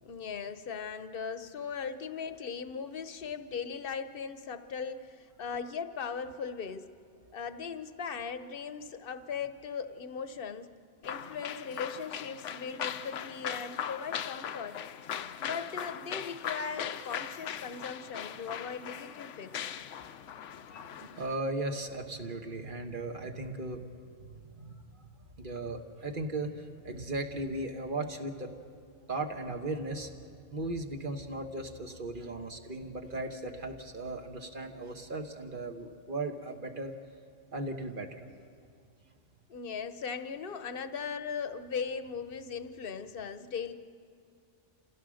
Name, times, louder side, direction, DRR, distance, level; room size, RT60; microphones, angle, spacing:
voice 1, 0.0-6.9 7.3-10.7 11.0-14.8 15.4-19.5 39.5-43.7, left 6 dB, 55° left, 11 dB, 1.0 m, -38 dB
sound 1, 11.0-21.3, left 9 dB, 90° left, 1.0 m, -39 dB
voice 2, 20.8-23.9 24.2-25.1 25.4-28.5 29.1-30.1 30.5-36.9 37.5-38.3, right 2 dB, 45° right, 5 dB, 1.4 m, -37 dB
28.0 x 16.0 x 6.4 m, 2.4 s
omnidirectional pair, 1.2 m